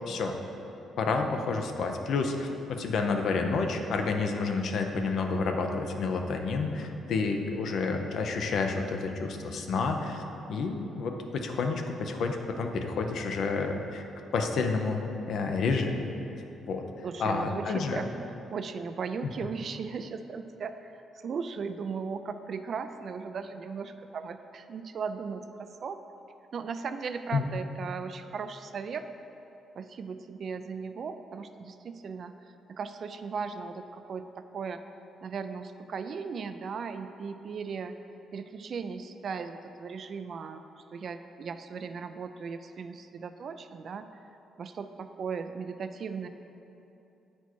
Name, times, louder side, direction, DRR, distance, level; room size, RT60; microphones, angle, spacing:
voice 1, 0.1-0.4 1.0-10.2 10.5-14.0 14.3-15.0 15.3-16.0 16.7-16.8 17.2-18.0 27.3-27.4, left 4 dB, 70° left, 4 dB, 0.6 m, -29 dB
voice 2, 17.0-18.1 18.5-26.0 26.5-29.0 29.8-32.3 32.7-34.8 35.2-37.9 38.3-40.6 40.9-44.1 44.6-46.3, right 5 dB, 55° right, 9 dB, 0.3 m, -37 dB
8.2 x 4.4 x 4.5 m, 2.9 s
cardioid pair, 90°, 0 cm